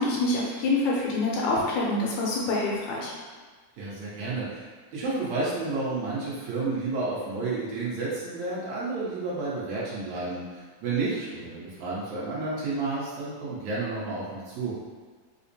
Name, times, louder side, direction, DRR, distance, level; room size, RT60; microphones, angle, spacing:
voice 1, 0.0-3.1, left 2 dB, 80° left, -4 dB, 2.0 m, -26 dB
voice 2, 3.8-4.6 4.9-14.8, right 3 dB, 75° right, -7 dB, 2.0 m, -31 dB
5.1 x 2.0 x 2.7 m, 1.5 s
omnidirectional pair, 3.4 m